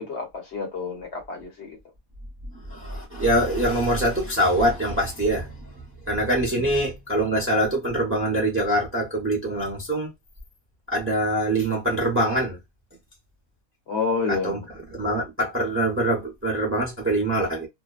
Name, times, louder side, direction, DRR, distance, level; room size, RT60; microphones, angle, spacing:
voice 1, 0.0-1.8 6.5-6.7 13.9-14.7, left 4 dB, 55° left, 1.0 m, -29 dB
voice 2, 2.7-10.1 10.9-12.6 14.3-14.6 14.9-17.7, right 1 dB, 15° right, 0.6 m, -24 dB
2.6 x 2.1 x 2.3 m
omnidirectional pair, 1.5 m